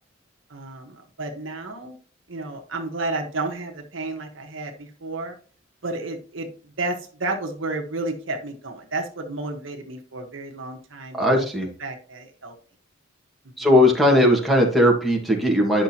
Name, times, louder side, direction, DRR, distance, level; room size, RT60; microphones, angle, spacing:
voice 1, 0.5-1.9 2.3-5.3 5.8-11.5 11.8-12.5 13.6-13.7, right 2 dB, 70° right, 3 dB, 1.3 m, -32 dB
voice 2, 11.1-11.7 13.6-15.8, left 1 dB, ahead, 0 dB, 1.7 m, -18 dB
10.0 x 6.1 x 2.9 m, 0.40 s
head